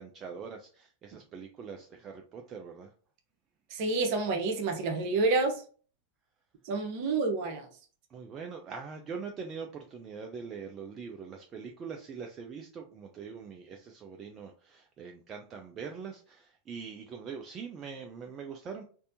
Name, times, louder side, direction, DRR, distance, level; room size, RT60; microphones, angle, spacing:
voice 1, 0.0-2.9 8.1-18.8, right 5 dB, 25° right, 0.4 m, -43 dB
voice 2, 3.7-5.6 6.6-7.7, right 3 dB, 45° right, 0.8 m, -28 dB
3.3 x 2.6 x 2.6 m
figure-of-eight pair, 90°, 0 cm